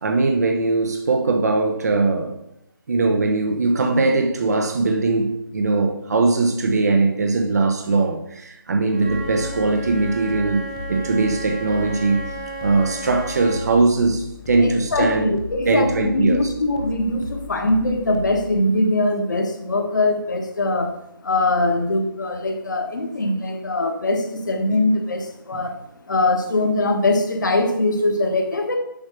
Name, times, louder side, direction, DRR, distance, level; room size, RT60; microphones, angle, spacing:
voice 1, 0.0-2.4 2.9-12.2 12.6-15.3 15.7-16.5 25.5-25.7, right 3 dB, 45° right, 1.0 m, -20 dB
Wind instrument woodwind instrument, 8.9-13.7, right 2 dB, 20° right, 0.9 m, -34 dB
sound 1, 9.1-18.6, left 4 dB, 10° left, 0.3 m, -37 dB
voice 2, 14.6-28.7, left 2 dB, 50° left, 1.5 m, -22 dB
7.2 x 5.3 x 6.5 m
figure-of-eight pair, 160°, 12 cm